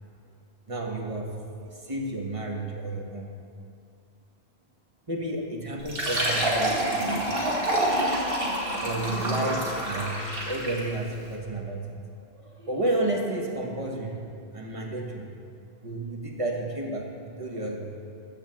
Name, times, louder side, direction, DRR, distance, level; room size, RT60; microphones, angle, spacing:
voice 1, 0.7-3.3 5.1-7.1 8.8-12.0 12.3-15.4 15.8-18.0, right 2 dB, 30° right, 0 dB, 1.4 m, -32 dB
Fill (with liquid), 5.8-10.9, right 1 dB, 60° right, 2.2 m, -27 dB
14.0 x 5.8 x 7.6 m, 2.4 s
omnidirectional pair, 1.1 m